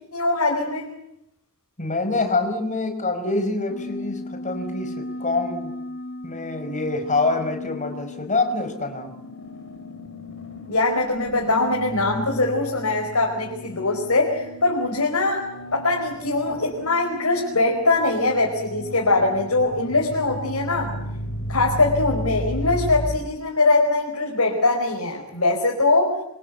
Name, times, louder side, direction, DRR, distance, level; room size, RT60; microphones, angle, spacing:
voice 1, 0.1-0.9 10.7-20.9 21.5-26.2, left 2 dB, 85° left, 0 dB, 4.9 m, -22 dB
voice 2, 1.8-5.8 6.2-9.1, left 3 dB, 35° left, 7 dB, 5.1 m, -25 dB
sound 1, 3.7-23.2, left 1 dB, 60° left, 4.1 m, -34 dB
27.0 x 26.0 x 8.3 m, 0.81 s
head